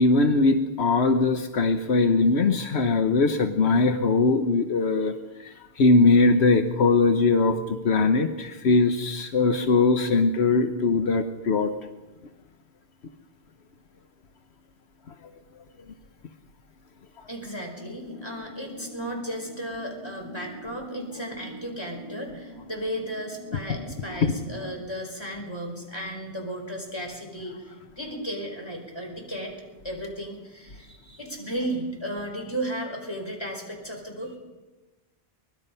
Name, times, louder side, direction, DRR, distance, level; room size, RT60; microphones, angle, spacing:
voice 1, 0.0-5.1 5.4-11.7 24.2-24.3, left 3 dB, 80° left, 7 dB, 1.2 m, -21 dB
voice 2, 17.3-29.5 29.8-34.4, right 1 dB, 25° left, 1 dB, 5.1 m, -34 dB
sound 1, 17.8-24.8, left 1 dB, 20° right, 2.9 m, -43 dB
24.0 x 20.0 x 5.5 m, 1.2 s
omnidirectional pair, 1.1 m